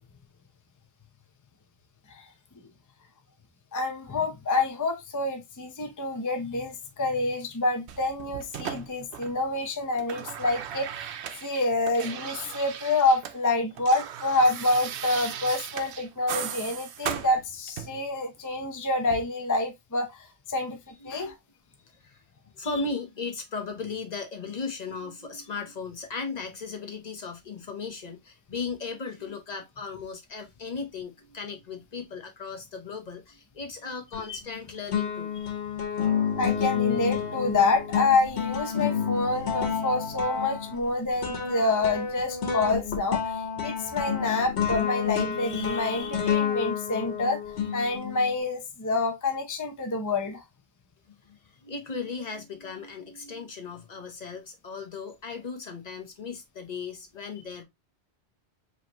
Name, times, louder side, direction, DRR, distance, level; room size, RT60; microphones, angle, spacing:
voice 1, 3.7-11.1 11.4-21.3 34.3-34.4 36.4-47.4 47.7-50.4, left 2 dB, 20° left, 0.6 m, -27 dB
sound 1, 7.9-9.6 9.8-13.4 13.6-18.1 19.1-19.2, right 9 dB, 75° right, 0.9 m, -37 dB
voice 2, 20.9-21.3 21.9-22.2 22.5-35.3 51.2-57.6, left 4 dB, 40° left, 1.1 m, -37 dB
sound 2, 34.1-34.6 34.9-48.3, left 7 dB, 80° left, 1.5 m, -29 dB
4.8 x 3.1 x 2.9 m
omnidirectional pair, 1.1 m